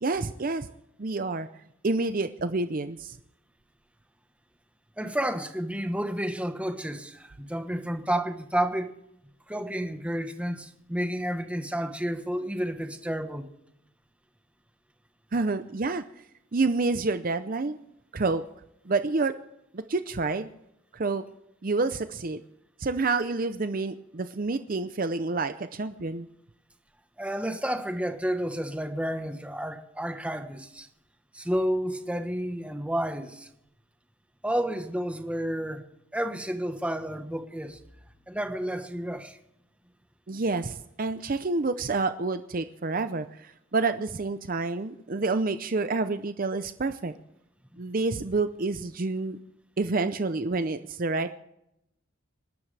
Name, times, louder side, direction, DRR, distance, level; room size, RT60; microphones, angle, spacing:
voice 1, 0.0-0.7 1.0-1.5 1.8-3.2 15.3-16.0 16.5-17.8 18.1-18.4 18.9-19.3 19.7-20.5 20.9-21.2 21.6-22.4 22.8-26.3 40.3-47.1 47.8-49.4 49.8-51.3, right 3 dB, 45° right, 0.6 m, -28 dB
voice 2, 5.0-8.9 9.5-13.5 27.2-30.9 31.3-33.5 34.4-35.8 36.1-37.8 38.3-39.4, right 1 dB, 5° right, 1.2 m, -30 dB
28.0 x 12.0 x 3.4 m
head